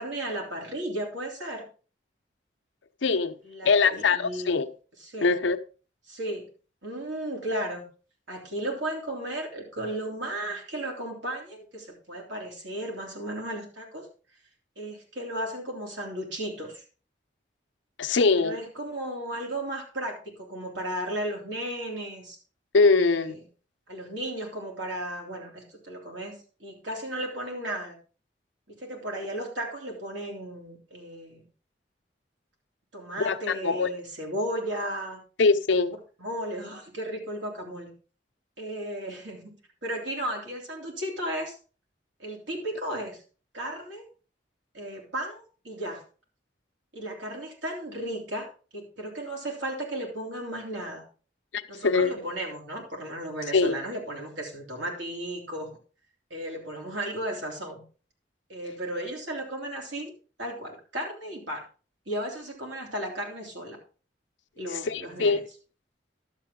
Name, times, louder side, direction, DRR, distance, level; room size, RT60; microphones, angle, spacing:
voice 1, 0.0-1.6 3.4-4.5 5.0-5.3 6.1-6.5 6.8-7.9 8.3-14.1 14.8-16.8 18.4-22.4 22.9-23.4 23.9-28.0 28.7-31.4 32.9-35.2 36.2-37.9 38.6-39.5 39.8-41.6 42.2-43.2 43.5-44.0 44.7-46.0 46.9-48.5 48.7-51.0 51.7-55.7 56.3-57.8 58.5-60.1 60.4-61.6 62.1-63.8 64.6-65.4, right 1 dB, 85° right, 3.3 m, -34 dB
voice 2, 3.0-3.4 3.6-4.7 5.2-5.6 18.0-18.6 22.7-23.3 33.2-33.9 35.4-35.9 51.5-52.1 53.5-53.8 64.7-65.4, left 4 dB, 90° left, 0.7 m, -23 dB
11.5 x 7.6 x 3.7 m
head